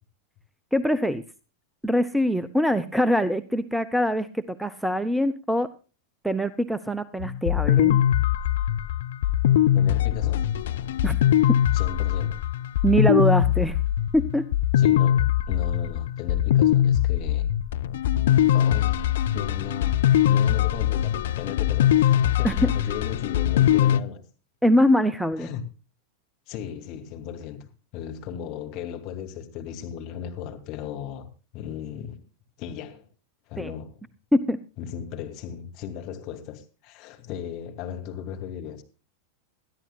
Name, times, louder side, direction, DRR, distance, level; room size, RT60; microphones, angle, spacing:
voice 1, 0.7-1.2 1.8-5.7 6.2-8.0 11.0-11.2 11.5-11.6 12.8-13.8 14.1-14.5 22.4-22.7 24.6-25.5 33.6-33.7 34.3-34.6, equal, ahead, 0.7 m, -23 dB
sound 1, 7.2-24.0, left 11 dB, 60° left, 0.6 m, -22 dB
voice 2, 9.7-10.5 11.7-12.3 14.8-17.5 18.5-24.2 25.4-25.6 26.5-27.6 27.9-31.3 31.5-32.2 32.6-33.0 33.5-34.0 34.8-38.8, left 8 dB, 40° left, 2.5 m, -36 dB
21.0 x 13.5 x 2.4 m
figure-of-eight pair, 90°, 0 cm